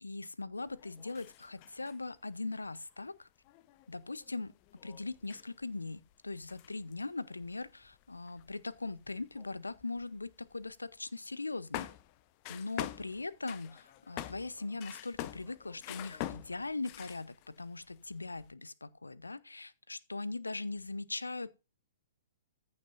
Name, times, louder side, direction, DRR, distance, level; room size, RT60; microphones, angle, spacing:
voice 1, 0.0-3.3 3.9-4.5 4.8-11.9 12.5-21.5, left 3 dB, 85° left, 0.6 m, -40 dB
sound 1, 0.7-2.1 2.6-2.7 3.0-3.1 3.4-10.7 11.0-11.1 11.7-17.6 17.9-18.5, left 14 dB, 35° left, 0.6 m, -46 dB
15.0 x 6.9 x 2.6 m
figure-of-eight pair, 115°, 0 cm